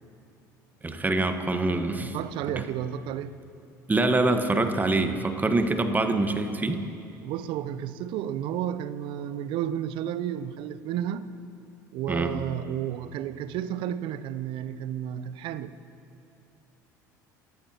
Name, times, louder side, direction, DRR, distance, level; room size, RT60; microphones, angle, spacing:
voice 1, 0.8-2.1 2.6-2.7 3.9-6.9 12.1-12.4, right 2 dB, 15° right, 1.4 m, -25 dB
voice 2, 2.0-3.4 7.2-11.3 11.9-15.7, right 10 dB, 55° right, 0.8 m, -32 dB
30.0 x 15.0 x 3.0 m
hypercardioid pair, 65°, 10 cm